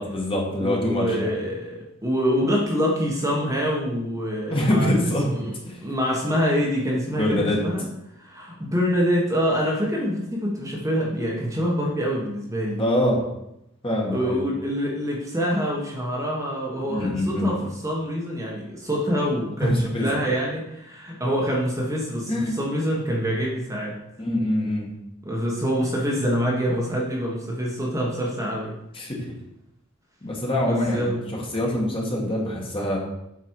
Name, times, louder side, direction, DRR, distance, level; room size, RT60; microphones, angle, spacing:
voice 1, 0.0-1.3 4.5-5.3 5.7-5.8 7.1-7.6 12.8-13.2 13.8-14.4 16.9-17.5 19.6-20.1 22.3-22.5 24.2-24.9 28.9-29.2 30.2-33.0, left 1 dB, 25° left, -2 dB, 1.9 m, -24 dB
voice 2, 0.6-5.5 5.8-7.8 8.2-12.8 14.1-17.6 17.8-24.0 25.2-28.7 30.6-31.2, equal, 15° right, -3 dB, 1.3 m, -25 dB
8.2 x 5.1 x 4.7 m, 0.82 s
head